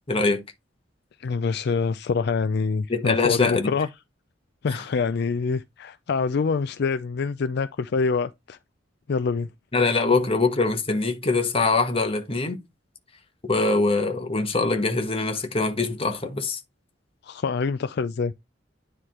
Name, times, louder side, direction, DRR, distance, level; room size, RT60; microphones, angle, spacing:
voice 1, 0.1-0.4 2.9-3.7 4.7-4.8 9.7-12.6 13.4-16.6, left 3 dB, 30° left, 1.1 m, -23 dB
voice 2, 1.2-3.9 4.6-8.6 9.1-9.5 17.2-18.3, left 5 dB, 60° left, 0.4 m, -25 dB
9.7 x 3.3 x 4.3 m
head